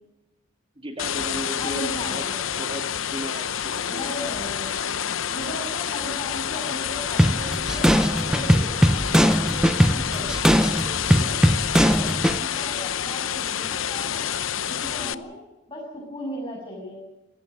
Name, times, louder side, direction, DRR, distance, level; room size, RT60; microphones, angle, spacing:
voice 1, 0.8-2.3 2.6-4.1 14.8-15.3, equal, 30° right, 4 dB, 2.1 m, -36 dB
sound 1, 1.0-15.1, left 9 dB, 80° left, 0.8 m, -28 dB
voice 2, 1.6-2.3 3.9-4.7 5.3-11.4 11.8-14.2 14.7-17.0, equal, 25° left, -1 dB, 7.4 m, -37 dB
sound 2, 7.2-12.4, equal, 5° right, 0.7 m, -20 dB
27.0 x 18.0 x 6.4 m, 0.97 s
head